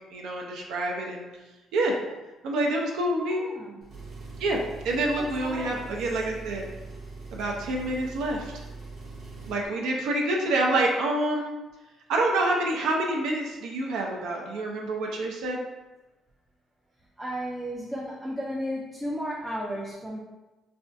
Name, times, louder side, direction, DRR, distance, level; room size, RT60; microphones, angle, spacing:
voice 1, 0.1-1.3 1.7-2.0 2.4-3.4 4.4-4.6 4.8-6.6 7.3-8.6 9.5-11.5 12.1-15.6, right 2 dB, 80° right, -1 dB, 0.5 m, -27 dB
voice 2, 3.3-3.8 5.2-5.9 17.2-20.2, equal, 5° right, -4 dB, 0.3 m, -34 dB
Engine, 3.8-9.7, right 3 dB, 40° right, 0.8 m, -42 dB
4.1 x 2.3 x 2.6 m, 1.1 s
cardioid pair, 175°, 0 cm